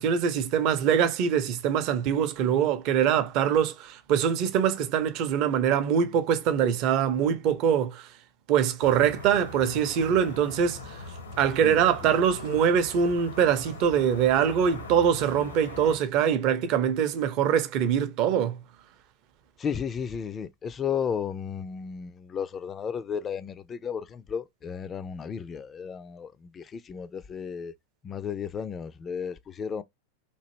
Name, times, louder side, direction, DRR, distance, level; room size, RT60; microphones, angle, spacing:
voice 1, 0.0-8.1 8.5-11.0 11.4-18.6, right 8 dB, 40° right, 0.6 m, -24 dB
sound 1, 8.8-16.0, left 3 dB, 70° left, 0.7 m, -42 dB
voice 2, 11.6-12.2 19.6-27.7 28.0-29.8, left 7 dB, 20° left, 0.3 m, -34 dB
3.0 x 2.5 x 2.8 m
figure-of-eight pair, 90°, 0 cm